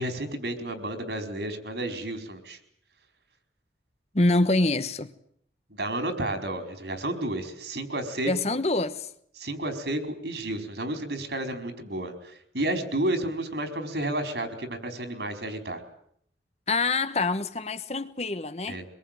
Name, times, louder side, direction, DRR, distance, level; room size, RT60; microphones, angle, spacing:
voice 1, 0.0-2.6 5.7-8.3 9.4-15.8 18.7-18.9, right 1 dB, 70° right, 4.8 m, -31 dB
voice 2, 4.1-5.1 8.3-9.1 16.7-18.8, left 2 dB, 35° left, 1.1 m, -25 dB
25.0 x 23.0 x 9.2 m
head